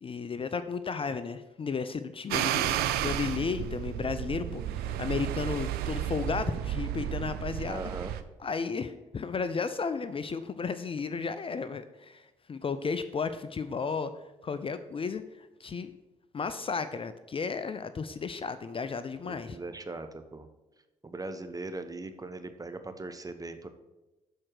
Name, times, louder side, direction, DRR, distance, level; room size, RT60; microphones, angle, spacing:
voice 1, 0.0-7.8 8.4-14.1 14.4-15.9 16.3-19.6, left 5 dB, 35° left, 11 dB, 0.5 m, -34 dB
sound 1, 2.3-8.2, right 11 dB, 75° right, 0.4 m, -32 dB
voice 2, 7.6-8.1 19.2-20.5 21.0-23.7, right 2 dB, 20° right, 9 dB, 0.8 m, -39 dB
6.5 x 4.4 x 6.1 m, 1.0 s
hypercardioid pair, 45°, 16 cm